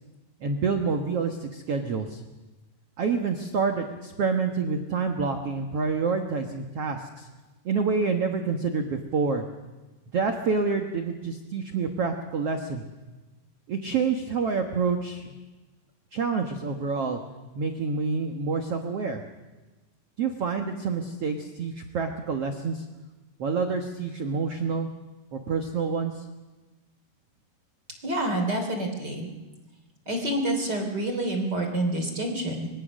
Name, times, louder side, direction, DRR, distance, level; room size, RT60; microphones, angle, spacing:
voice 1, 0.4-2.2 3.0-7.3 7.6-9.4 10.1-12.8 13.7-15.3 16.1-17.2 17.5-19.2 20.2-22.8 23.4-24.9 25.3-26.2, right 5 dB, 75° right, 4 dB, 1.3 m, -27 dB
voice 2, 28.0-29.3 30.1-32.7, right 1 dB, 25° right, 4 dB, 3.1 m, -28 dB
25.0 x 22.5 x 6.4 m, 1.2 s
omnidirectional pair, 4.8 m